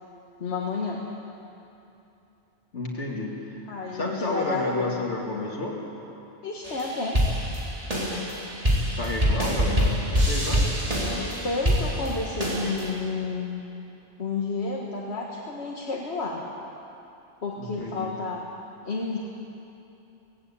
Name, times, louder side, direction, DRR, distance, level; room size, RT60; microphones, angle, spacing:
voice 1, 0.4-1.0 3.7-4.9 6.4-7.2 11.1-13.6 14.2-16.4 17.4-18.4 18.8-19.2, left 4 dB, 70° left, -2 dB, 1.9 m, -31 dB
voice 2, 2.7-3.6 3.9-5.8 9.0-10.7 17.6-18.1, left 2 dB, 85° left, -3 dB, 2.7 m, -31 dB
sound 1, 6.6-12.9, equal, 30° right, 3.7 m, -25 dB
18.0 x 17.0 x 8.5 m, 2.9 s
omnidirectional pair, 1.2 m